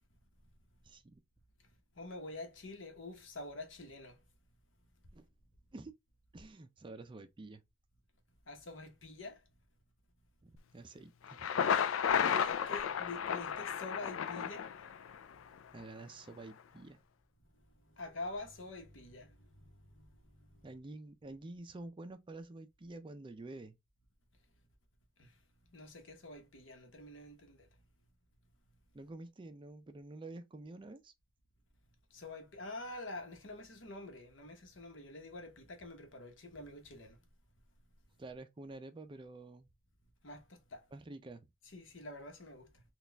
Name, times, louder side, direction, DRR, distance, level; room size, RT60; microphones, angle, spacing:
voice 1, 0.8-1.2 5.1-5.3 5.7-5.9 6.3-7.6 10.4-11.5 15.7-17.0 20.6-23.8 28.9-31.1 38.2-39.7 40.9-41.5, right 2 dB, 25° right, 0.4 m, -49 dB
voice 2, 1.9-4.2 8.5-9.4 12.0-15.0 17.5-20.6 25.2-25.4 25.7-27.7 32.1-37.2 40.2-40.9 41.6-42.8, left 2 dB, 70° left, 1.1 m, -47 dB
Thunder, 11.2-15.2, left 7 dB, 90° left, 0.4 m, -33 dB
4.2 x 2.4 x 3.3 m
head